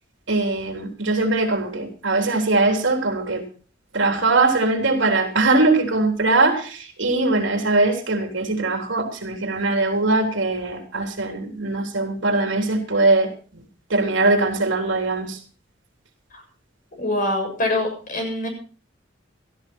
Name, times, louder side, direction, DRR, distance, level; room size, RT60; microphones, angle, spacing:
voice 1, 0.3-3.5 3.9-13.3 13.9-15.4, right 2 dB, 75° right, 4 dB, 3.6 m, -21 dB
voice 2, 17.0-18.5, left 1 dB, 45° left, 3 dB, 7.1 m, -24 dB
17.0 x 14.0 x 4.4 m, 0.38 s
head